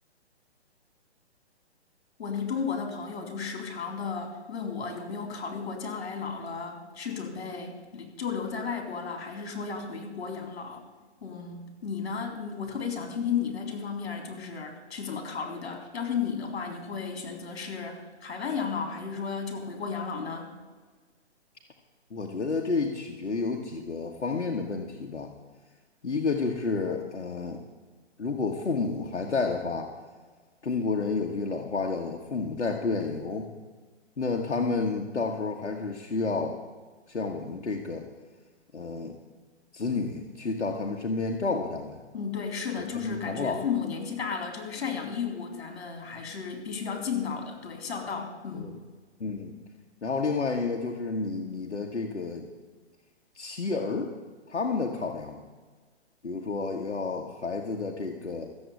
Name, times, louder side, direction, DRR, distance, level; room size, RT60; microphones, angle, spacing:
voice 1, 2.2-10.8 11.2-20.5 42.1-48.7, left 6 dB, 65° left, 4 dB, 3.9 m, -34 dB
voice 2, 22.1-25.3 26.0-27.6 28.2-29.9 30.6-33.5 34.2-36.6 37.1-38.1 38.7-39.1 39.7-42.0 43.0-43.6 48.6-48.7 49.2-49.5 50.0-52.5 53.3-54.1 54.5-55.4 56.2-58.5, left 4 dB, 90° left, 2 dB, 1.7 m, -30 dB
14.0 x 7.9 x 9.4 m, 1.4 s
hypercardioid pair, 140°, 34 cm